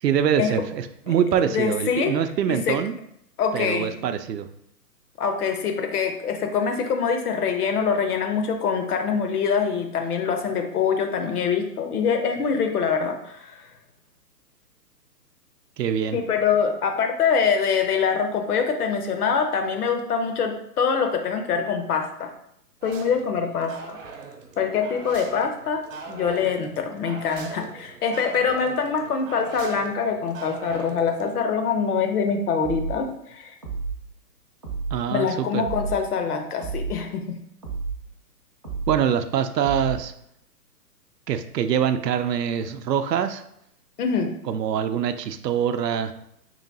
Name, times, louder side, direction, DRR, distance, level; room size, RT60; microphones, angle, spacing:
voice 1, 0.0-3.0 3.5-4.5 15.8-16.2 34.9-35.6 38.9-40.1 41.3-43.4 44.4-46.1, right 8 dB, 75° right, 9 dB, 0.6 m, -24 dB
voice 2, 1.5-2.1 2.5-2.8 3.4-3.9 5.2-13.6 16.1-22.3 22.8-24.0 24.6-25.8 26.1-33.5 35.1-37.4 44.0-44.3, left 6 dB, 65° left, 5 dB, 0.9 m, -24 dB
sound 1, 22.8-31.4, right 5 dB, 50° right, 0.8 m, -40 dB
sound 2, 32.6-33.0 33.6-34.0 34.6-35.0 35.6-36.0 36.6-37.0 37.6-38.0 38.6-39.0 39.6-40.0, right 4 dB, 25° right, 0.3 m, -31 dB
3.2 x 2.8 x 4.0 m, 0.75 s
hypercardioid pair, 135°, 49 cm